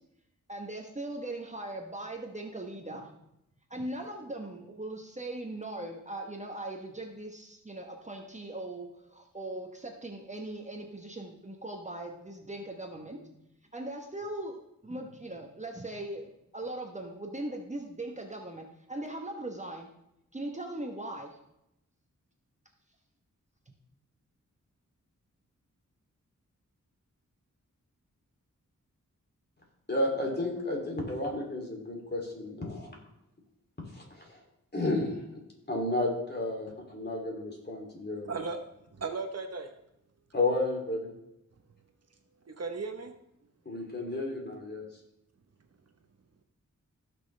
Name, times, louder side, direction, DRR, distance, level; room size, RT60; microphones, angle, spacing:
voice 1, 0.5-3.1 3.7-19.9 20.3-21.4 23.7-23.8, right 1 dB, 25° right, 2 dB, 1.1 m, -40 dB
voice 2, 29.9-33.0 33.9-34.4 34.7-35.2 35.7-38.3 40.3-41.1 43.6-44.8, left 2 dB, 35° left, -1 dB, 2.8 m, -32 dB
voice 3, 38.3-38.6 38.9-39.7 42.5-43.1, right 4 dB, 55° right, 5 dB, 1.0 m, -36 dB
15.5 x 6.2 x 3.3 m, 0.83 s
wide cardioid pair, 95°, 31 cm